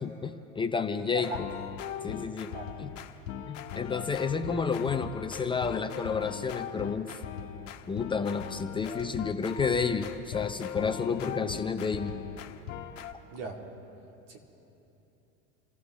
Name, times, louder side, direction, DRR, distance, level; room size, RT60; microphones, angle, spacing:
voice 1, 0.0-1.5 2.0-2.5 2.8-2.9 3.5-7.2 7.9-12.1, left 5 dB, 15° left, 6 dB, 0.5 m, -31 dB
voice 2, 1.1-1.4 2.5-2.7 13.3-13.6 14.3-14.4, right 3 dB, 85° right, -1 dB, 2.8 m, -37 dB
sound 1, 1.2-13.1, left 9 dB, 80° left, 1.2 m, -39 dB
28.5 x 15.0 x 3.2 m, 3.0 s
supercardioid pair, 115°, 37 cm